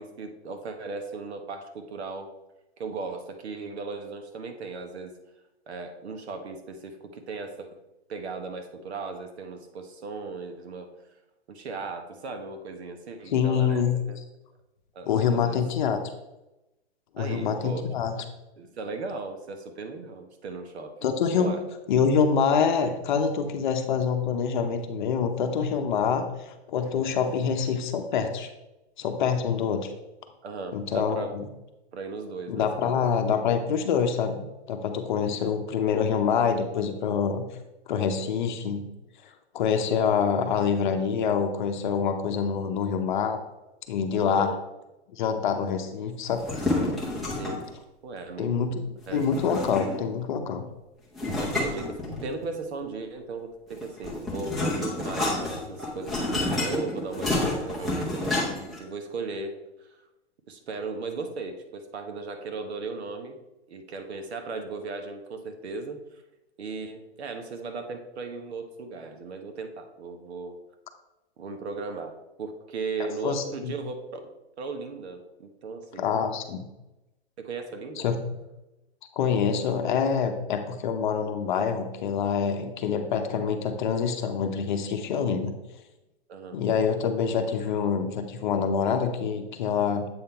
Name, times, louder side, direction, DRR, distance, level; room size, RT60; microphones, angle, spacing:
voice 1, 0.0-2.3 2.8-5.2 5.7-7.8 8.1-10.9 11.5-14.2 14.9-15.6 17.2-17.9 18.6-21.0 21.4-21.6 30.4-31.4 31.9-33.1 35.3-35.4 44.3-44.6 47.4-47.7 48.0-48.7 49.1-49.3 51.3-60.0 60.5-63.4 63.7-66.2 66.6-70.6 71.4-74.0 74.2-76.1 77.4-78.1 86.3-86.6, right 4 dB, 70° right, 6 dB, 1.2 m, -37 dB
voice 2, 13.3-14.0 15.1-16.0 17.1-18.1 21.0-21.5 21.9-26.2 26.7-28.5 29.0-29.9 30.7-31.5 32.5-37.4 37.9-38.8 39.5-43.4 43.9-44.5 45.2-46.4 48.4-50.6 73.2-73.7 76.0-76.7 78.0-78.2 79.2-85.5 86.5-90.1, left 6 dB, 45° left, 6 dB, 0.8 m, -26 dB
sound 1, 46.3-47.7 49.1-50.1 51.2-52.5 53.7-58.8, left 2 dB, ahead, 0.6 m, -29 dB
7.8 x 3.7 x 4.4 m, 0.95 s
hypercardioid pair, 160°, 33 cm